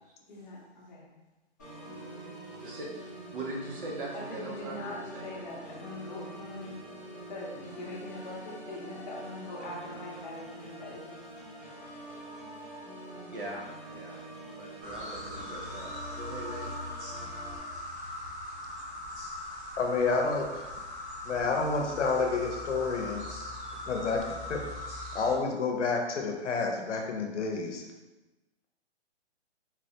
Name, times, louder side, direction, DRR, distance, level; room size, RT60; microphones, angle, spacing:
voice 1, 0.3-1.1 4.1-6.7 7.3-11.3, left 2 dB, 40° left, -4 dB, 0.8 m, -42 dB
Organ, 1.6-17.6, right 1 dB, 15° left, 0.5 m, -45 dB
voice 2, 2.6-5.2 13.3-13.7 13.9-14.2 14.5-15.9 16.2-16.8, right 2 dB, 50° right, -2 dB, 0.8 m, -40 dB
sound 1, 14.8-25.3, left 1 dB, 75° right, 1.4 m, -40 dB
voice 3, 19.8-20.7 21.2-23.3 23.9-24.2 24.5-24.6 25.1-27.8, left 4 dB, 90° left, 2 dB, 0.7 m, -29 dB
3.8 x 2.1 x 2.7 m, 1.1 s
hypercardioid pair, 170°, 35 cm